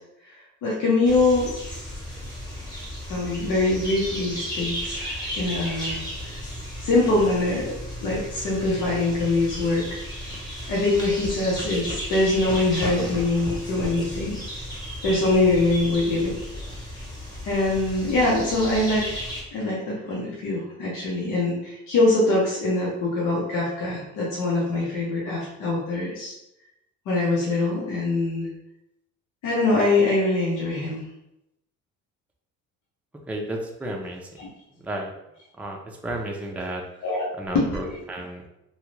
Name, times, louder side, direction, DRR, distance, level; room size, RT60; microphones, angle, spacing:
voice 1, 0.6-1.5 3.1-6.0 6.3-6.4 6.8-7.7 8.0-10.0 10.7-14.4 15.0-16.3 17.4-19.2 19.5-26.3 27.1-28.5 29.4-31.0 34.4-34.5 37.0-37.3 37.5-38.0, left 2 dB, 90° left, -5 dB, 0.9 m, -23 dB
sound 1, 1.0-19.4, equal, 15° left, 1.0 m, -34 dB
voice 2, 33.3-34.2 34.8-35.1 35.6-35.8 36.0-36.8 37.4-38.4, right 1 dB, 5° right, 0 dB, 0.4 m, -32 dB
2.7 x 2.3 x 3.1 m, 0.86 s
cardioid pair, 90°, 30 cm